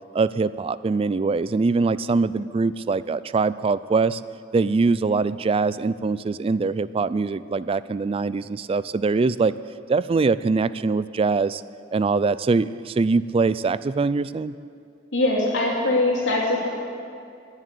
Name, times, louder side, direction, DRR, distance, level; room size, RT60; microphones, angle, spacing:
voice 1, 0.1-4.2 4.5-9.5 9.9-11.6 11.9-14.5, right 4 dB, 30° right, 16 dB, 0.3 m, -23 dB
voice 2, 15.1-16.7, left 2 dB, 80° left, -3 dB, 3.0 m, -22 dB
20.5 x 7.4 x 8.4 m, 2.4 s
head